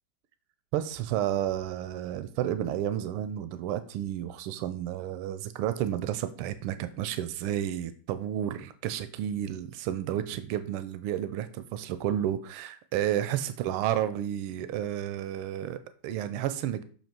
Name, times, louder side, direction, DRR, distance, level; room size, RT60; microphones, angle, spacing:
voice 1, 0.7-16.8, right 11 dB, 85° right, 11 dB, 1.5 m, -31 dB
7.3 x 2.9 x 5.9 m, 0.43 s
omnidirectional pair, 2.4 m